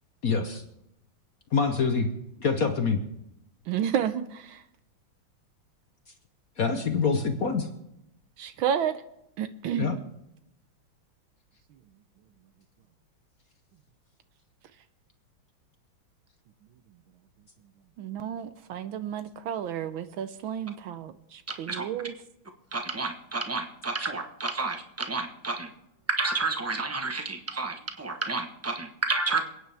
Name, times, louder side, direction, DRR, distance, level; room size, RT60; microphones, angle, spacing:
voice 1, 0.2-0.6 1.5-2.1 2.4-3.0 6.6-7.7 9.8-10.0, left 5 dB, 50° left, 6 dB, 1.2 m, -25 dB
voice 2, 3.7-4.6 8.4-8.9 9.4-9.9 18.0-22.1 27.5-27.7, right 9 dB, 75° right, 11 dB, 1.4 m, -31 dB
voice 3, 22.7-25.7 26.1-29.5, right 3 dB, 10° right, 5 dB, 0.7 m, -30 dB
28.0 x 9.5 x 3.4 m, 0.81 s
omnidirectional pair, 2.3 m